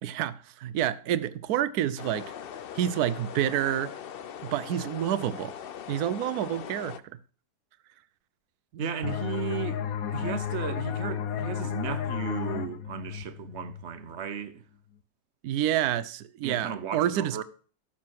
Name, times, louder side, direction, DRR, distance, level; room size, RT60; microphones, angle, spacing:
voice 1, 0.0-2.3 2.8-3.9 4.4-5.5 5.9-7.0 15.4-17.4, right 11 dB, 70° right, 1.2 m, -28 dB
sound 1, 2.0-7.0, left 9 dB, 80° left, 0.5 m, -41 dB
voice 2, 8.8-9.8 10.1-14.6 16.4-17.4, right 7 dB, 45° right, 1.2 m, -35 dB
sound 2, 9.0-14.4, left 9 dB, 65° left, 1.1 m, -33 dB
12.5 x 7.6 x 4.7 m
omnidirectional pair, 1.8 m